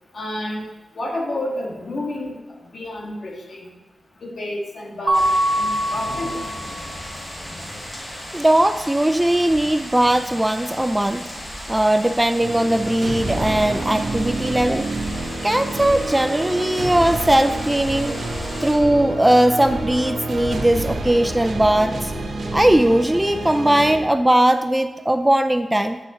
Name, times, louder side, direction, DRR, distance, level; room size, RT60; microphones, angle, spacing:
voice 1, 0.1-0.6 0.9-2.4 2.7-3.7 4.2-5.3 5.6-6.4, left 1 dB, 60° left, -1 dB, 1.6 m, -29 dB
sound 1, 5.1-18.7, equal, 30° left, 2.9 m, -35 dB
Mallet percussion, 5.1-6.9, right 1 dB, 45° right, 1.0 m, -22 dB
voice 2, 8.3-11.3 11.7-14.9 15.4-18.1 18.6-22.1 22.5-26.0, right 1 dB, 10° right, 9 dB, 0.3 m, -19 dB
sound 2, 12.4-24.0, right 2 dB, 70° right, 1.1 m, -28 dB
9.1 x 7.6 x 2.8 m, 1.1 s
wide cardioid pair, 95°, 0 cm